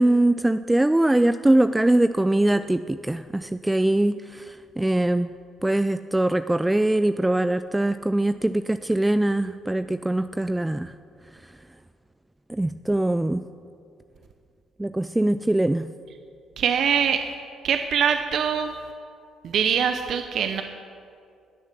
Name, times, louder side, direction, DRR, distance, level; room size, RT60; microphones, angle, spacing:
voice 1, 0.0-5.3 5.6-10.9 12.5-13.5 14.8-15.9, right 1 dB, 10° right, 12 dB, 0.4 m, -22 dB
voice 2, 16.6-17.2 17.6-18.7 19.4-20.6, right 7 dB, 65° right, 7 dB, 0.8 m, -23 dB
20.0 x 7.3 x 7.4 m, 2.4 s
supercardioid pair, 70°, 0 cm